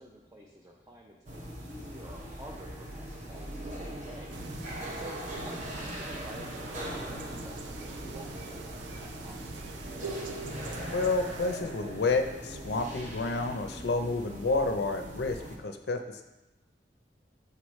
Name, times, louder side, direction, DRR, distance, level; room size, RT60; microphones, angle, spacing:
voice 1, 0.0-9.4, equal, 15° right, -2 dB, 0.5 m, -49 dB
sound 1, 1.3-15.6, right 1 dB, 40° right, 0.8 m, -40 dB
sound 2, 4.3-11.6, right 3 dB, 85° right, 0.5 m, -46 dB
voice 2, 10.9-16.2, left 3 dB, 60° left, 7 dB, 0.5 m, -30 dB
6.7 x 4.8 x 3.1 m, 0.98 s
head